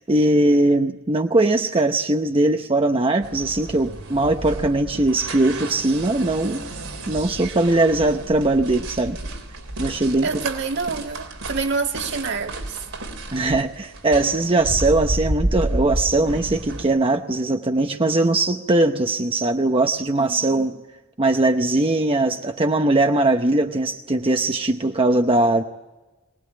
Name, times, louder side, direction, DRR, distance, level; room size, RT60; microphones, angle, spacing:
voice 1, 0.0-6.7 7.1-9.2 9.8-10.4 13.3-20.8 21.2-25.6, right 2 dB, 25° right, 0.8 m, -20 dB
sound 1, 3.2-16.8, right 1 dB, 90° right, 3.8 m, -31 dB
voice 2, 10.2-12.8 20.2-20.8, right 4 dB, 55° right, 1.8 m, -27 dB
23.0 x 19.5 x 9.7 m
head